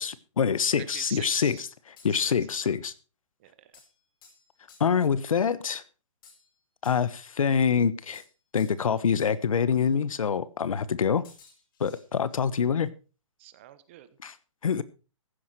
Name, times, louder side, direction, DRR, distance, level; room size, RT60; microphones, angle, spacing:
voice 1, 0.0-1.6 2.0-2.9 4.8-5.8 6.8-8.2 8.5-11.2 11.8-12.9 14.2-14.3 14.6-14.8, left 7 dB, 85° left, 17 dB, 1.2 m, -25 dB
voice 2, 0.8-1.7 2.1-2.7 3.4-3.8 13.4-14.1, right 14 dB, 20° right, 14 dB, 0.9 m, -46 dB
sound 1, 1.3-1.6 2.0-2.3 3.7-5.1 6.2-7.3 8.1-8.9 9.2-9.4 9.8-9.9 11.2-12.4, left 5 dB, 40° left, 5.2 m, -57 dB
15.0 x 9.8 x 4.7 m, 0.34 s
hypercardioid pair, 175°, 17 cm